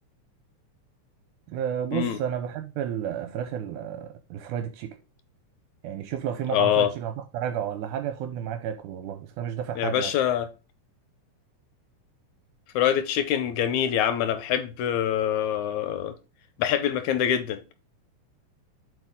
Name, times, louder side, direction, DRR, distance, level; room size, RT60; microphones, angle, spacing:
voice 1, 1.5-5.0 5.8-10.1, right 9 dB, 80° right, 2.2 m, -31 dB
voice 2, 6.5-6.9 9.8-10.5 12.8-16.2 16.6-17.6, left 10 dB, 80° left, 2.1 m, -25 dB
7.8 x 4.7 x 3.6 m
omnidirectional pair, 3.6 m